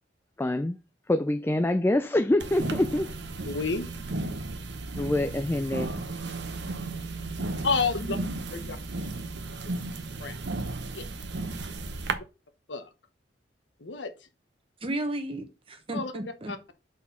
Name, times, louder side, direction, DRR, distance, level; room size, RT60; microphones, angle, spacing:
voice 1, 0.4-0.8 1.1-3.1 5.0-5.9, left 1 dB, 15° left, 0.3 m, -25 dB
sound 1, 2.4-12.1, right 2 dB, 65° right, 0.9 m, -34 dB
voice 2, 3.5-3.9 7.6-8.2 8.5-8.8 10.2-10.4 10.9-11.0 12.7-12.9 13.8-14.1 15.9-16.1 16.5-16.7, left 4 dB, 75° left, 1.1 m, -29 dB
voice 3, 14.8-16.7, right 1 dB, 30° right, 1.1 m, -34 dB
6.2 x 4.4 x 5.6 m
head